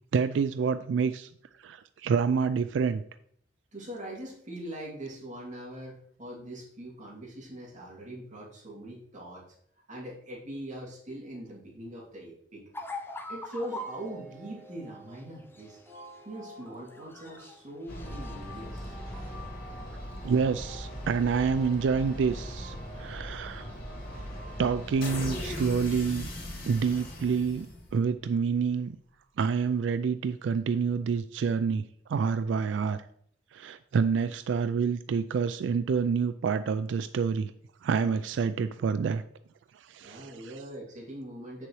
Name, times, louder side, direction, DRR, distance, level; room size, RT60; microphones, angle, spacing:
voice 1, 0.1-1.3 1.6-3.0 20.2-23.7 24.6-26.3 26.6-27.7 27.9-29.0 29.4-31.8 32.1-33.0 33.5-37.5 37.8-39.2 39.8-40.5, right 5 dB, 90° right, 12 dB, 0.3 m, -28 dB
voice 2, 3.7-9.5 9.9-12.6 13.3-15.8 16.2-19.0 40.0-41.7, right 1 dB, 45° right, -5 dB, 2.5 m, -42 dB
sound 1, 12.7-14.0 15.4-16.2 16.5-17.6 17.9-18.4 18.8-18.9, left 2 dB, 15° left, 0.7 m, -41 dB
sound 2, 13.7-26.1, right 1 dB, 5° right, 2.6 m, -51 dB
sound 3, 17.9-28.1, left 1 dB, 55° left, 2.6 m, -39 dB
8.1 x 6.7 x 3.1 m, 0.66 s
head